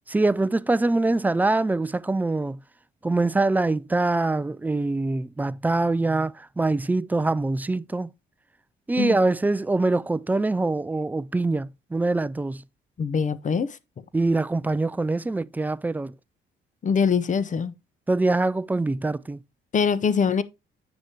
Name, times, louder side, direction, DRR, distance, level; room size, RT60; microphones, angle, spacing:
voice 1, 0.1-2.6 3.0-8.1 8.9-12.6 14.1-16.1 18.1-19.4, right 2 dB, 10° right, 0.3 m, -24 dB
voice 2, 13.0-13.8 16.8-17.7 19.7-20.4, left 6 dB, 40° left, 0.6 m, -23 dB
8.1 x 6.3 x 2.8 m
cardioid pair, 90°, 20 cm